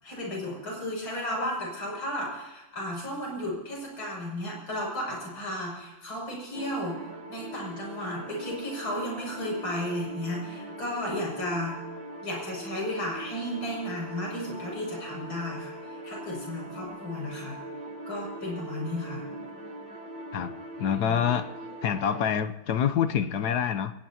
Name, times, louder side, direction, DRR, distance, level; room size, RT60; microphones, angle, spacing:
voice 1, 0.0-7.0 7.3-11.8 12.2-17.6 18.1-19.2 21.1-21.2, left 1 dB, 80° left, -2 dB, 7.4 m, -34 dB
sound 1, 6.5-22.3, right 1 dB, 65° right, 2.7 m, -41 dB
voice 2, 20.8-21.5 21.8-23.9, left 8 dB, 65° left, 11 dB, 1.2 m, -26 dB
21.5 x 18.0 x 2.9 m, 1.0 s
omnidirectional pair, 2.2 m